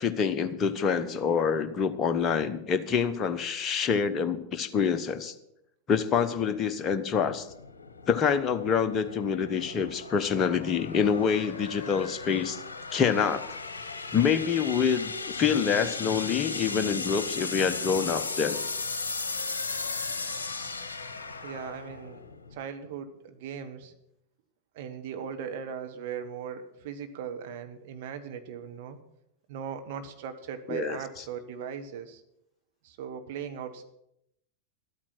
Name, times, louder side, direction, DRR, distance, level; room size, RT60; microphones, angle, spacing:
voice 1, 0.0-5.3 5.9-7.5 8.1-12.6 12.9-13.4 14.1-18.6 30.7-31.0, left 6 dB, 25° left, 8 dB, 1.0 m, -26 dB
sound 1, 7.2-22.6, left 4 dB, 75° left, 0.9 m, -36 dB
voice 2, 21.4-22.2 22.5-23.9 24.7-29.0 29.5-32.2 32.8-33.8, right 7 dB, 50° right, 6 dB, 1.3 m, -38 dB
12.0 x 8.8 x 6.0 m, 0.81 s
figure-of-eight pair, 90°, 0 cm